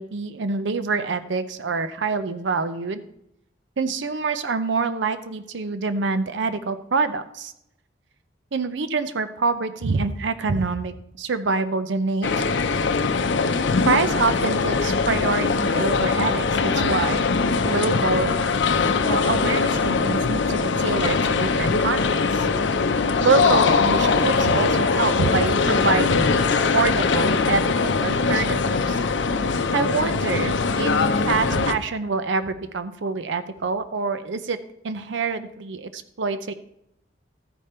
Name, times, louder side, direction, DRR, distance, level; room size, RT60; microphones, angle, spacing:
voice 1, 0.0-3.0 3.8-7.5 8.5-12.4 13.9-17.3 17.6-18.3 19.1-22.5 23.2-26.4 26.7-29.0 29.7-34.6 34.8-36.5, right 4 dB, 70° right, 11 dB, 0.6 m, -26 dB
sound 1, 12.2-31.7, left 4 dB, 70° left, 0.6 m, -21 dB
13.5 x 5.1 x 4.3 m, 0.77 s
head